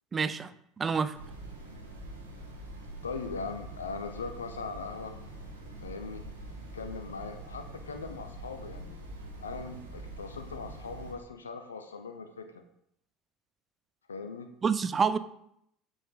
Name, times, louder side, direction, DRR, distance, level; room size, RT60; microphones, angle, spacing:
voice 1, 0.1-1.2 14.6-15.2, right 5 dB, 30° right, 0.4 m, -28 dB
sound 1, 1.1-11.1, right 1 dB, 85° right, 1.1 m, -44 dB
voice 2, 3.0-5.1 5.8-6.2 6.7-9.0 9.4-12.6 14.1-14.5, left 4 dB, 85° left, 0.5 m, -40 dB
6.8 x 4.9 x 3.8 m
figure-of-eight pair, 70°, 0 cm